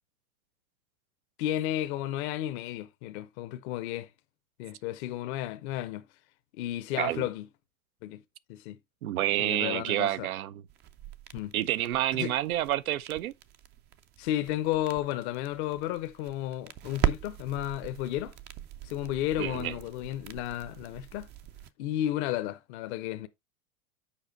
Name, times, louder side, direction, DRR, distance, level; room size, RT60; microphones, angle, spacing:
voice 1, 1.4-4.1 4.6-6.0 6.6-7.5 8.0-8.2 8.5-8.8 9.4-10.3 11.3-11.5 12.1-12.3 14.2-18.4 18.8-21.3 21.8-23.3, left 13 dB, 50° left, 0.8 m, -33 dB
voice 2, 9.0-10.6 11.5-13.3 19.4-19.7, right 13 dB, 85° right, 0.7 m, -29 dB
sound 1, 10.7-21.7, right 11 dB, 25° right, 0.5 m, -39 dB
7.3 x 5.0 x 3.9 m
hypercardioid pair, 115°, 42 cm